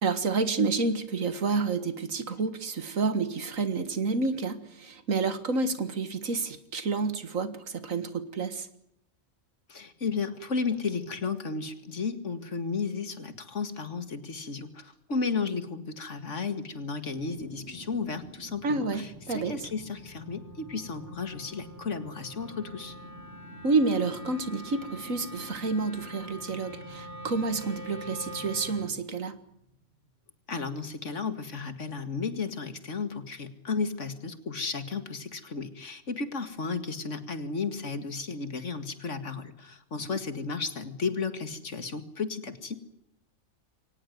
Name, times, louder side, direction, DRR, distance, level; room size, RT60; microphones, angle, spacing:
voice 1, 0.0-8.7 18.6-19.7 23.6-29.4, right 4 dB, 70° right, 11 dB, 2.1 m, -29 dB
voice 2, 9.7-22.9 30.5-42.8, left 4 dB, 60° left, 10 dB, 2.3 m, -33 dB
sound 1, 17.1-30.2 30.5-30.6, right 2 dB, 50° right, 3.1 m, -49 dB
Wind instrument woodwind instrument, 17.4-29.0, left 1 dB, 10° left, 3.4 m, -46 dB
23.5 x 18.5 x 9.3 m, 0.75 s
omnidirectional pair, 1.4 m